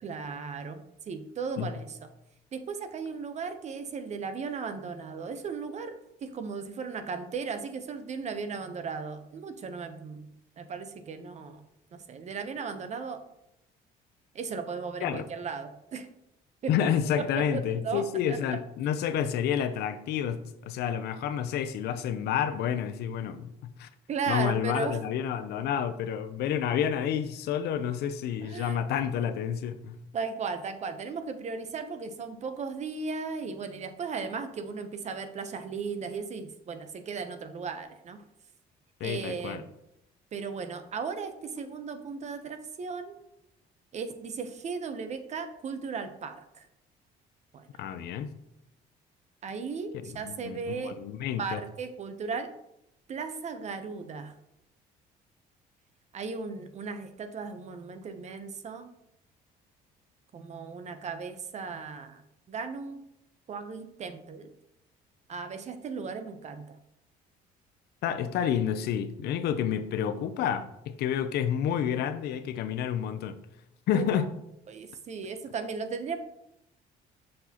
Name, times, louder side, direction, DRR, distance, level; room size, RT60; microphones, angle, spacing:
voice 1, 0.0-2.0 2.5-10.3 10.6-11.6 11.9-13.2 14.3-16.1 16.6-16.9 17.2-18.6 24.1-25.0 28.4-29.1 30.1-38.2 39.0-39.7 40.3-43.2 43.9-46.7 47.5-47.7 49.4-51.0 51.4-52.5 53.1-54.3 56.1-58.9 60.3-62.2 62.5-63.0 63.5-64.5 65.3-66.8 73.9-74.3 74.7-76.2, right 5 dB, 40° right, 8 dB, 0.8 m, -36 dB
voice 2, 16.7-23.9 24.3-30.0 39.0-39.6 47.8-48.3 50.2-51.6 68.0-73.4 73.9-74.3, left 9 dB, 75° left, 11 dB, 0.6 m, -29 dB
6.4 x 5.9 x 2.9 m, 0.82 s
cardioid pair, 110°, 17 cm